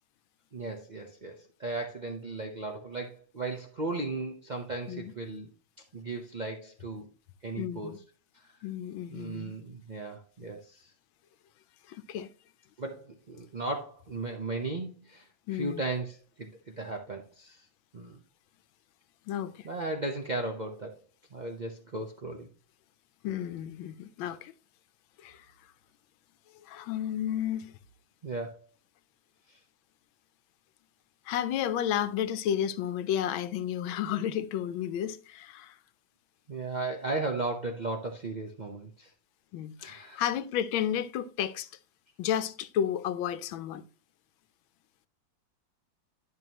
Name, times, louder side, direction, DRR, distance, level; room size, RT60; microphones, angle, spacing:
voice 1, 0.5-5.5 5.9-7.1 7.4-8.0 8.4-8.5 9.1-10.9 12.8-17.6 17.9-18.2 19.6-21.0 21.3-22.5 28.2-28.5 29.5-29.6 36.5-39.1 39.8-40.2, right 2 dB, 85° right, 0.4 m, -36 dB
voice 2, 7.6-8.0 8.6-9.5 11.9-12.3 15.5-15.8 19.3-19.7 23.2-24.5 25.2-25.4 26.7-27.7 31.3-35.8 39.5-41.7 42.2-43.8, left 10 dB, 85° left, 1.4 m, -32 dB
11.0 x 5.9 x 2.9 m
omnidirectional pair, 2.1 m